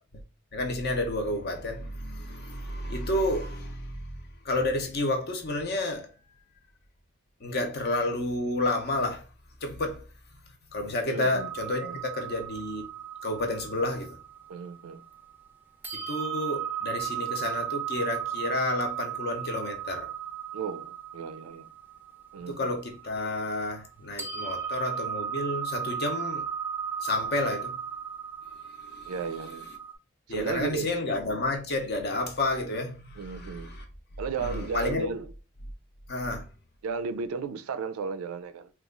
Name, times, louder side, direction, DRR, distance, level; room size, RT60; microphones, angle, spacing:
voice 1, 0.5-4.1 4.4-6.1 7.4-9.3 9.6-10.0 10.7-12.8 13.2-14.2 15.9-20.1 22.5-26.4 27.0-27.8 28.8-29.1 30.3-33.8 34.4-35.1 36.1-36.5, left 2 dB, 50° left, 0.7 m, -30 dB
voice 2, 11.1-11.5 11.8-12.0 14.5-15.0 20.5-21.7 22.3-22.8 29.1-29.7 30.3-31.0 33.2-33.7 34.2-35.3 36.8-38.7, right 5 dB, 85° right, 0.4 m, -34 dB
sound 1, 11.3-15.4 15.8-23.9 24.2-29.9, right 8 dB, 10° right, 0.4 m, -36 dB
3.0 x 2.3 x 3.6 m
head